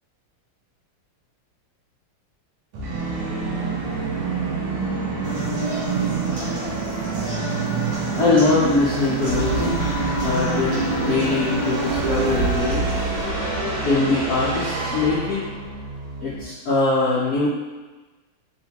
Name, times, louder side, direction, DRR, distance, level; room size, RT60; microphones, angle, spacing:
Musical instrument, 2.7-16.4, right 4 dB, 75° right, 1.1 m, -27 dB
sound 1, 5.2-13.2, right 2 dB, 60° right, 0.4 m, -31 dB
voice 1, 8.1-9.7 10.2-12.9 13.8-15.4 16.2-17.5, left 3 dB, 85° left, -9 dB, 0.8 m, -22 dB
sound 2, 9.2-15.2, right 2 dB, 55° left, 1.4 m, -29 dB
3.8 x 2.1 x 2.8 m, 1.2 s
omnidirectional pair, 2.4 m